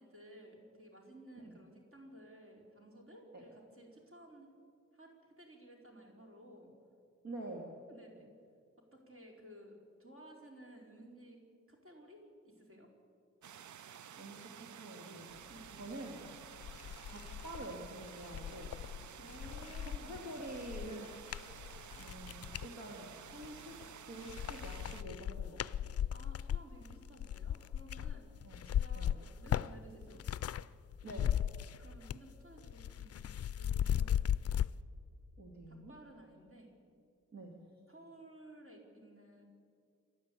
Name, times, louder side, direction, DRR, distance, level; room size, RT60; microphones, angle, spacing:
voice 1, 0.0-4.5 4.9-6.7 7.9-8.3 8.9-11.4 11.7-12.9 15.5-15.8 19.2-20.2 26.1-28.3 28.6-30.3 31.8-33.3 33.6-34.5 35.7-36.7 37.9-39.4, right 1 dB, 50° right, 0 dB, 4.3 m, -56 dB
voice 2, 7.2-7.7 14.2-15.3 15.8-16.2 17.0-18.7 19.8-21.1 21.4-21.7 22.0-23.7 24.1-25.9 28.4-28.7 28.9-29.1 31.0-31.3 35.4-35.9 37.3-37.5, right 1 dB, 65° right, -1 dB, 2.6 m, -47 dB
sound 1, 13.4-25.0, right 9 dB, 90° right, 0.6 m, -52 dB
sound 2, 16.0-16.1 16.6-22.7 23.3-23.9 24.2-30.7 30.9-32.3 32.6-34.7, left 10 dB, 55° left, 0.4 m, -37 dB
28.0 x 11.5 x 8.4 m, 2.4 s
wide cardioid pair, 155°, 29 cm